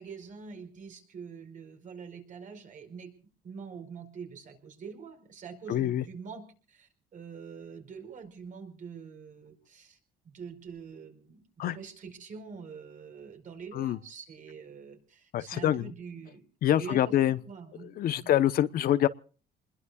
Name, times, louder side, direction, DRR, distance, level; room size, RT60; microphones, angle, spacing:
voice 1, 0.0-3.1 3.4-10.0 10.2-16.4 16.8-17.9 18.2-18.3, right 6 dB, 50° right, 4.9 m, -45 dB
voice 2, 5.7-6.0 11.6-11.8 13.7-14.0 15.3-15.9 16.6-17.4 17.8-19.1, left 12 dB, 60° left, 0.9 m, -25 dB
28.0 x 21.0 x 2.4 m
cardioid pair, 110°, 17 cm